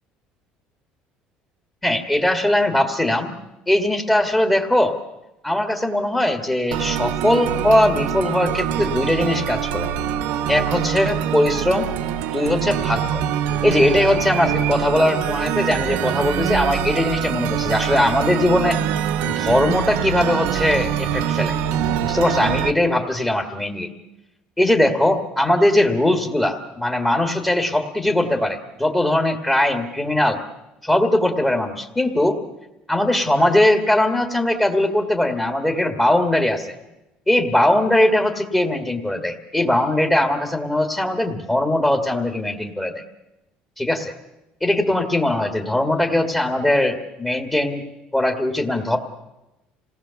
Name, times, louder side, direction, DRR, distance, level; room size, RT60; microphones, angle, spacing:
voice 1, 1.8-3.4 3.7-5.0 5.4-9.9 10.5-11.9 12.3-13.2 13.6-18.8 19.3-21.6 22.0-23.9 24.6-30.4 30.8-32.4 32.9-36.8 37.3-43.0 43.8-44.1 44.6-47.8 48.1-49.0, left 1 dB, 10° left, 3 dB, 1.8 m, -20 dB
sound 1, 6.7-22.7, right 9 dB, 80° right, 1.1 m, -24 dB
27.0 x 18.5 x 7.0 m, 0.95 s
cardioid pair, 145°, 3 cm